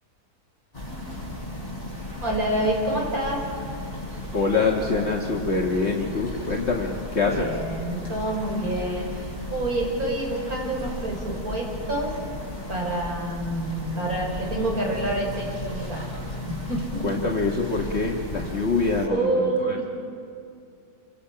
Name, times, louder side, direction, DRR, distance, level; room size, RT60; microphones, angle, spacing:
sound 1, 0.7-19.1, left 1 dB, 25° left, 6.9 m, -35 dB
voice 1, 2.2-3.6 7.2-12.1 12.7-16.0 16.5-17.1 19.1-19.8, right 1 dB, 65° right, 0 dB, 4.6 m, -27 dB
voice 2, 4.3-7.5 17.0-19.8, left 3 dB, 45° left, -1 dB, 1.6 m, -25 dB
27.5 x 24.0 x 5.7 m, 2.5 s
omnidirectional pair, 1.6 m